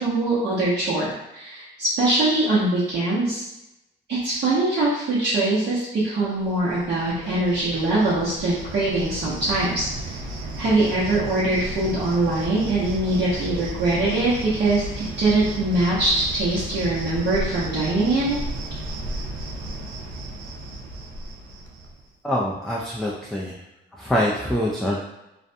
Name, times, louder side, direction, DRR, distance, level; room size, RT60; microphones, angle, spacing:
voice 1, 0.0-3.4 4.1-10.1 10.6-18.4, right 2 dB, 60° right, -10 dB, 0.9 m, -22 dB
Cricket, 6.4-22.1, right 1 dB, 85° right, 0.5 m, -34 dB
voice 2, 22.2-23.6 24.0-25.0, equal, ahead, -5 dB, 0.4 m, -24 dB
2.5 x 2.1 x 2.6 m, 0.91 s
cardioid pair, 90°, 20 cm